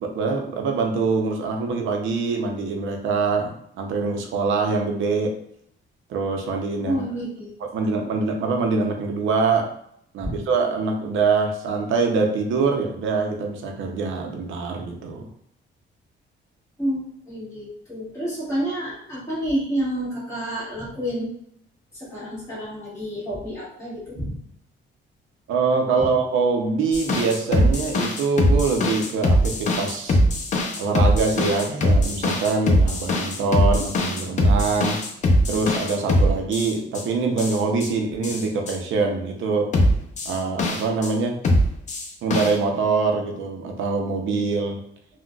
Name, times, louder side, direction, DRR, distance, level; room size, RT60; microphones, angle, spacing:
voice 1, 0.0-5.3 6.1-7.0 7.7-9.7 10.1-15.3 25.5-30.2 30.8-35.0 35.5-39.7 40.3-41.4 42.2-44.8, right 4 dB, 85° right, 3 dB, 0.5 m, -24 dB
voice 2, 6.8-7.5 7.8-8.0 10.2-10.4 16.8-21.3 21.9-24.4, equal, 15° left, -9 dB, 1.5 m, -29 dB
sound 1, 26.9-37.0 37.4-37.9 38.2-38.8 39.7-41.1 41.4-42.5, equal, 40° left, 0.5 m, -21 dB
3.7 x 2.2 x 2.3 m, 0.70 s
cardioid pair, 160°, 20 cm